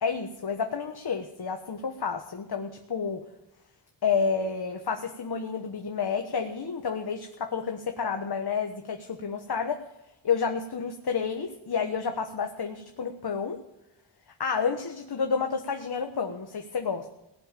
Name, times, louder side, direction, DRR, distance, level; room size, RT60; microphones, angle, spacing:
voice 1, 0.0-3.2 4.0-9.8 10.2-13.6 14.4-17.1, left 6 dB, 55° left, 4 dB, 1.3 m, -30 dB
18.0 x 7.3 x 9.0 m, 0.95 s
wide cardioid pair, 90°, 46 cm